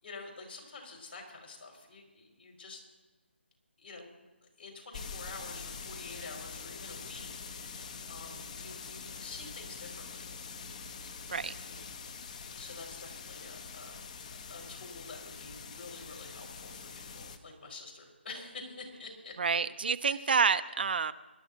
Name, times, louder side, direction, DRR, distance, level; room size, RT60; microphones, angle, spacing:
voice 1, 0.0-2.8 3.8-4.1 4.4-10.3 11.7-12.0 12.2-14.0 14.5-19.4 20.1-20.3, left 3 dB, 60° left, 0 dB, 4.7 m, -48 dB
sound 1, 4.9-17.4, left 5 dB, 35° left, 1.0 m, -44 dB
voice 2, 19.4-21.1, right 5 dB, 55° right, 12 dB, 0.6 m, -28 dB
25.0 x 12.5 x 2.9 m, 1.3 s
figure-of-eight pair, 155°, 6 cm